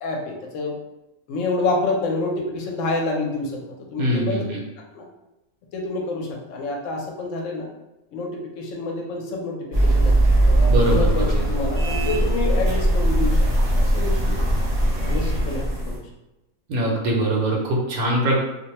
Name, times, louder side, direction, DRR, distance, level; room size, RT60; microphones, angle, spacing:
voice 1, 0.0-0.7 1.3-4.5 4.9-5.1 5.7-7.7 8.1-8.3 8.6-13.4 13.7-14.4 15.0-16.0, left 3 dB, 65° left, -1 dB, 0.9 m, -28 dB
voice 2, 4.0-4.6 10.7-11.4 16.7-18.4, right 1 dB, 80° right, -1 dB, 1.1 m, -22 dB
sound 1, 9.7-16.0, right 1 dB, 55° right, 0.4 m, -20 dB
2.6 x 2.1 x 2.9 m, 0.97 s
omnidirectional pair, 1.5 m